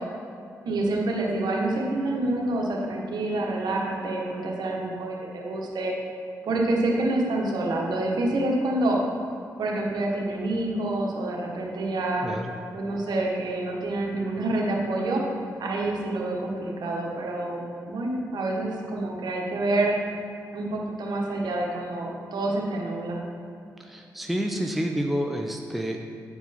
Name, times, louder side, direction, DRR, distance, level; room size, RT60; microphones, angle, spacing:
voice 1, 0.6-5.9 6.4-9.0 9.6-12.3 12.7-15.2 15.6-17.6 17.9-19.9 20.5-23.2, right 2 dB, 75° right, -1 dB, 1.3 m, -27 dB
voice 2, 12.2-12.5 23.8-26.1, equal, ahead, 2 dB, 0.6 m, -29 dB
9.4 x 4.6 x 4.2 m, 2.6 s
supercardioid pair, 50°, 7 cm